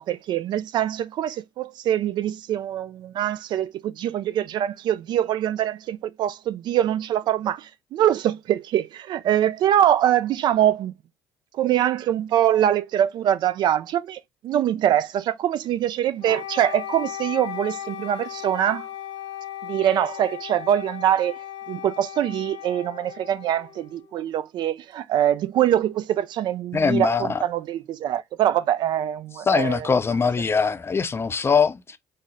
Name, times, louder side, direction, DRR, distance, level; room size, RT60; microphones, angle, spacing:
voice 1, 0.0-10.9 11.5-18.9 19.6-21.4 21.7-29.9 30.5-30.6, right 11 dB, 55° right, 0.3 m, -23 dB
Wind instrument woodwind instrument, 16.2-24.3, left 12 dB, 65° left, 1.0 m, -37 dB
voice 2, 26.7-27.4 29.5-32.0, left 5 dB, 25° left, 0.5 m, -22 dB
3.9 x 2.1 x 3.7 m
hypercardioid pair, 60°, 9 cm